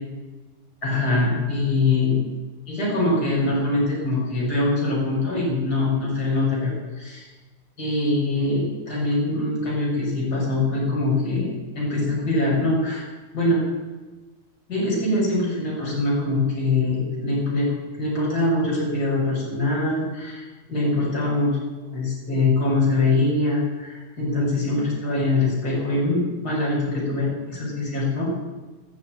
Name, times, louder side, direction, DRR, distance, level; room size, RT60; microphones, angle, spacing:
voice 1, 0.8-2.2 2.7-7.3 7.8-11.5 11.7-13.6 14.7-17.7 18.0-28.3, left 2 dB, 30° left, -5 dB, 6.8 m, -23 dB
13.0 x 10.5 x 9.1 m, 1.2 s
omnidirectional pair, 3.6 m